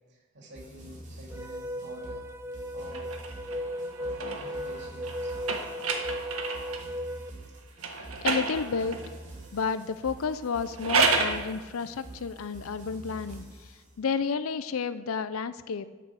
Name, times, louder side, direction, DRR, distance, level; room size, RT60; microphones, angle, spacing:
voice 1, 0.1-2.2 2.7-3.1 4.0-5.3, equal, 55° right, -2 dB, 2.6 m, -47 dB
sound 1, 0.5-13.8, right 1 dB, 40° right, 3.0 m, -46 dB
sound 2, 1.3-7.3, equal, 10° right, 0.6 m, -36 dB
sound 3, 2.9-6.9 7.8-9.2 10.6-11.4, right 4 dB, 90° right, 1.6 m, -30 dB
voice 2, 8.2-9.0 9.5-13.7 14.0-15.9, left 5 dB, 75° left, 13 dB, 0.5 m, -31 dB
10.5 x 8.3 x 7.2 m, 1.3 s
head